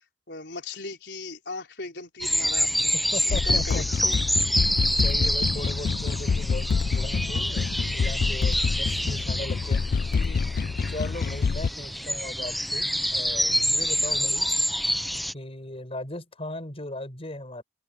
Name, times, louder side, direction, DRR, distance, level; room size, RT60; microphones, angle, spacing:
voice 1, 0.3-2.9 3.2-3.8 9.3-9.4 10.1-10.5, left 3 dB, 75° left, 4.4 m, -38 dB
sound 1, 2.2-15.3, equal, ahead, 0.6 m, -27 dB
voice 2, 3.1-3.8 4.8-9.8 10.9-14.5 15.3-17.6, left 1 dB, 35° left, 6.7 m, -37 dB
sound 2, 3.3-11.7, left 5 dB, 55° left, 0.4 m, -27 dB
open air
head